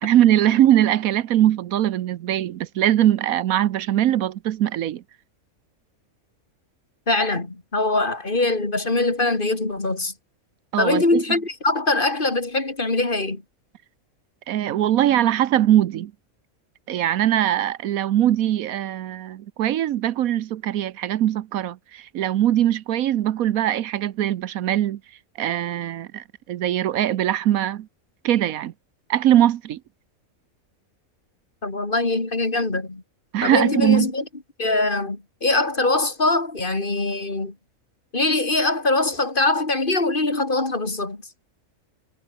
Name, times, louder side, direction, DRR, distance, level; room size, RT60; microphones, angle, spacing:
voice 1, 0.0-5.0 10.7-11.2 14.5-16.1 16.9-25.0 25.4-27.9 28.2-28.7 29.1-29.8 33.3-34.1, right 12 dB, 75° right, 1.2 m, -21 dB
voice 2, 7.1-10.1 10.8-13.4 31.6-33.0 33.4-34.2 34.6-37.5 38.1-41.2, left 2 dB, 35° left, 2.9 m, -22 dB
omnidirectional pair, 1.5 m